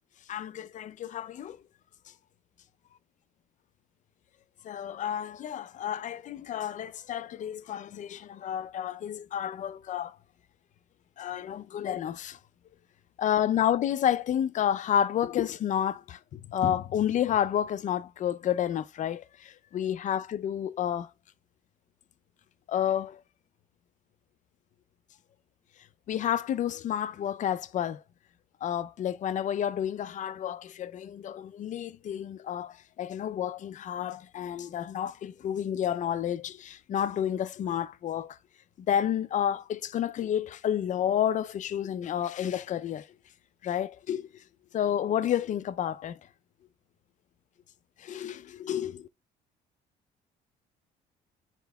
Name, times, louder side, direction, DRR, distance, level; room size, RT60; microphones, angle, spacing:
voice 1, 0.3-1.6 4.6-10.2 11.2-12.4 13.2-21.1 22.7-23.2 26.1-28.0 28.6-38.4 38.9-43.1 43.6-44.3 44.7-46.2 48.0-49.1, left 10 dB, 45° left, 0.5 m, -30 dB
10.5 x 4.5 x 2.3 m
cardioid pair, 110°, 17 cm